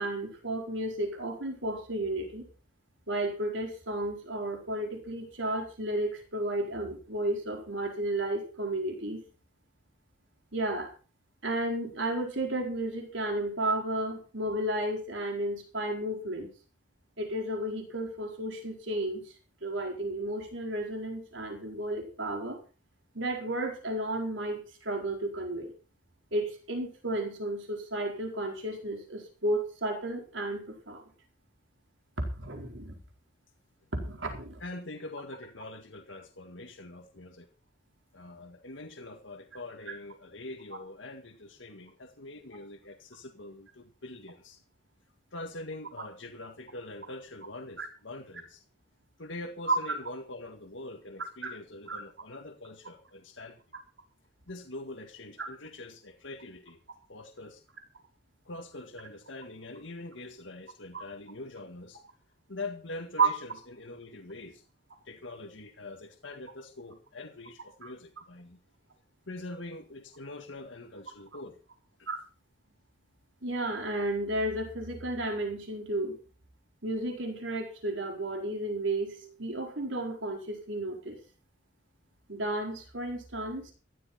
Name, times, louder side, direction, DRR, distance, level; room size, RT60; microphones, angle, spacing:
voice 1, 0.0-2.4 3.1-9.2 10.5-10.9 11.4-16.5 17.2-19.3 19.6-22.6 23.1-25.7 26.3-31.0 32.2-32.9 33.9-34.6 47.8-47.9 49.7-49.8 51.4-51.5 51.9-52.0 55.4-55.5 63.2-63.3 67.8-67.9 72.1-72.2 73.4-76.2 76.8-81.2 82.3-83.7, right 1 dB, 90° right, 3 dB, 4.5 m, -32 dB
voice 2, 34.6-37.5 38.1-44.6 45.3-48.6 49.2-53.6 54.5-56.8 57.1-57.6 58.5-62.0 62.5-64.6 65.1-68.6 69.3-71.6 72.0-72.1, left 2 dB, 85° left, 5 dB, 1.8 m, -44 dB
15.0 x 13.0 x 4.4 m, 0.36 s
head